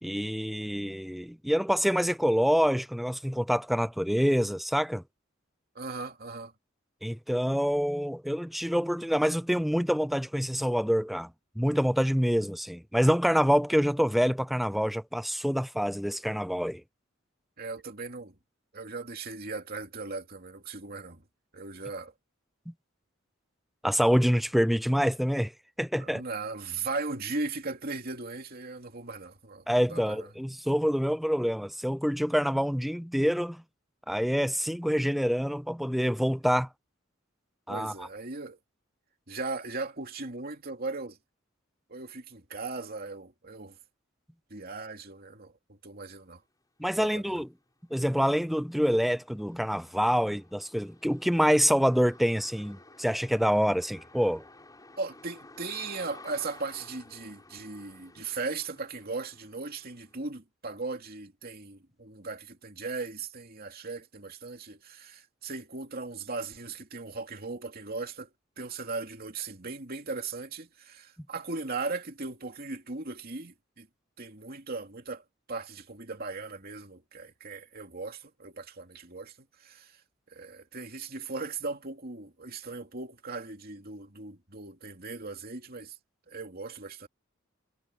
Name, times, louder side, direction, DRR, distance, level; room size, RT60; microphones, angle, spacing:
voice 1, 0.0-5.0 7.0-11.3 11.6-16.8 22.7-22.8 23.8-25.5 25.8-26.2 29.7-33.6 34.1-36.7 37.7-38.1 46.8-47.5 47.9-54.4, equal, ahead, 0.5 m, -26 dB
voice 2, 5.7-6.5 17.6-18.4 18.7-21.2 21.5-22.1 25.9-30.3 37.7-38.6 39.3-41.2 41.9-43.8 44.5-46.4 47.0-47.4 55.0-68.3 68.6-73.9 74.2-80.0 80.3-86.0 86.3-87.1, right 3 dB, 50° right, 2.8 m, -38 dB
sound 1, 46.9-47.0 47.4-60.3, left 2 dB, 20° left, 6.2 m, -54 dB
head